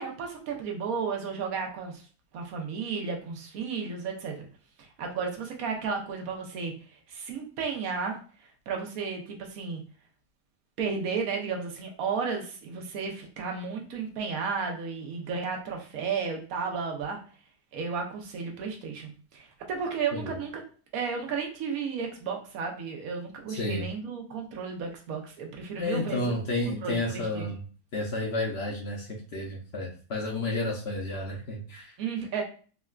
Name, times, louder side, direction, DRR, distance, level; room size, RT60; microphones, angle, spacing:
voice 1, 0.0-2.0 2.3-4.5 4.8-8.2 8.7-9.8 10.8-17.2 17.7-20.6 20.9-26.3 26.8-27.5 32.0-32.4, right 5 dB, 80° right, 2 dB, 1.1 m, -33 dB
voice 2, 23.5-23.9 25.8-27.6 27.9-32.0, left 2 dB, 60° left, 0 dB, 0.7 m, -31 dB
3.8 x 2.2 x 2.3 m, 0.40 s
omnidirectional pair, 1.5 m